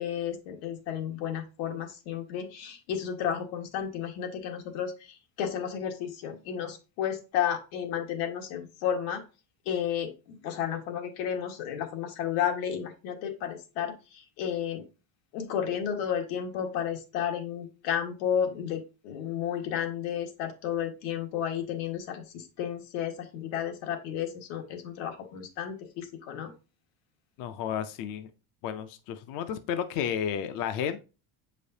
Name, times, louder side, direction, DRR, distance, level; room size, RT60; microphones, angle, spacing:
voice 1, 0.0-9.2 9.6-14.8 15.3-26.5, left 9 dB, 85° left, 5 dB, 1.5 m, -32 dB
voice 2, 27.4-28.3 28.6-31.0, left 8 dB, 45° left, 10 dB, 0.5 m, -32 dB
7.7 x 5.1 x 2.7 m, 0.31 s
cardioid pair, 175°, 48 cm